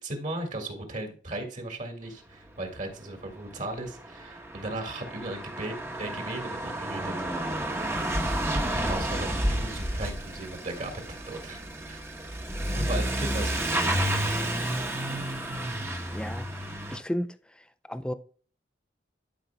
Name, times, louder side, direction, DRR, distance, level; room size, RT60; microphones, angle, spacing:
voice 1, 0.0-7.1 8.9-12.0 12.7-14.3, right 2 dB, 45° right, 1.8 m, -37 dB
Truck / Accelerating revving vroom, 3.3-3.4 3.6-17.0, right 1 dB, 15° right, 1.0 m, -30 dB
voice 2, 16.1-16.5 16.9-17.4 17.9-18.1, equal, 5° left, 0.4 m, -32 dB
12.0 x 5.2 x 2.2 m
head